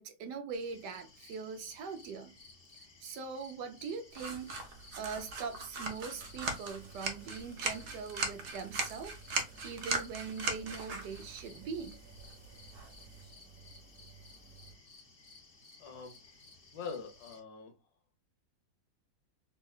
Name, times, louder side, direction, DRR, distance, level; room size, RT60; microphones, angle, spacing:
voice 1, 0.0-2.3 3.0-4.5 4.9-12.0, right 5 dB, 75° right, 1.2 m, -42 dB
sound 1, 0.5-17.4, left 3 dB, 40° left, 0.9 m, -57 dB
sound 2, 4.1-13.2, right 3 dB, 55° right, 0.8 m, -39 dB
sound 3, 6.0-14.8, right 4 dB, 35° right, 1.2 m, -57 dB
voice 2, 15.8-16.2 16.7-17.7, left 5 dB, 80° left, 1.5 m, -43 dB
5.5 x 2.2 x 2.3 m
omnidirectional pair, 1.9 m